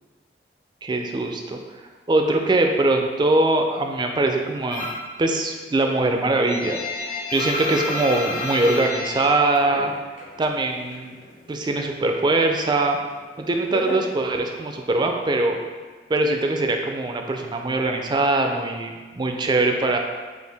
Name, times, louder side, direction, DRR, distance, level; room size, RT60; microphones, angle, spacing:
voice 1, 0.8-1.6 2.1-4.9 5.2-9.9 10.4-11.2 11.5-13.0 13.4-15.6 16.1-20.0, right 2 dB, 25° right, 3 dB, 0.3 m, -22 dB
sound 1, 4.7-5.1 5.5-10.4 10.6-11.7 12.0-14.8, left 2 dB, 45° left, 0.5 m, -31 dB
4.4 x 2.6 x 3.4 m, 1.4 s
head